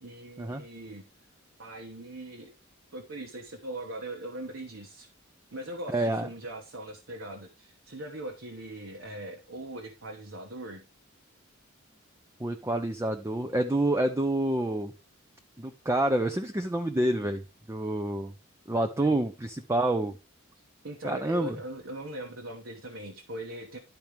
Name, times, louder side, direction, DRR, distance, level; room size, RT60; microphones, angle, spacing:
voice 1, 0.0-1.0 1.6-2.5 2.9-5.1 5.5-10.8 18.9-19.2 20.8-23.8, right 1 dB, 70° right, 1 dB, 1.2 m, -40 dB
voice 2, 5.9-6.3 12.4-14.9 15.6-17.4 17.7-18.3 18.7-20.2 21.0-21.6, right 1 dB, 15° right, 6 dB, 0.5 m, -28 dB
12.0 x 4.5 x 3.4 m, 0.27 s
head